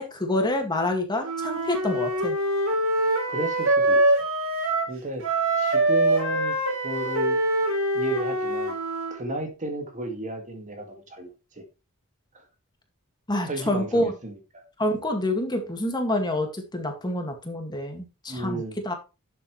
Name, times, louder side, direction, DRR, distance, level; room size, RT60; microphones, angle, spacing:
voice 1, 0.0-2.4 13.3-14.1 14.8-18.9, left 1 dB, 20° left, 2.1 m, -27 dB
Wind instrument woodwind instrument, 1.2-4.9 5.2-9.2, right 1 dB, 65° right, 3.6 m, -24 dB
voice 2, 3.3-4.0 4.9-5.2 5.6-6.6 6.8-7.4 7.9-8.8 9.1-11.6 12.3-12.4 13.5-14.6 18.3-18.8, right 1 dB, 35° right, 2.2 m, -33 dB
11.5 x 7.6 x 3.2 m
head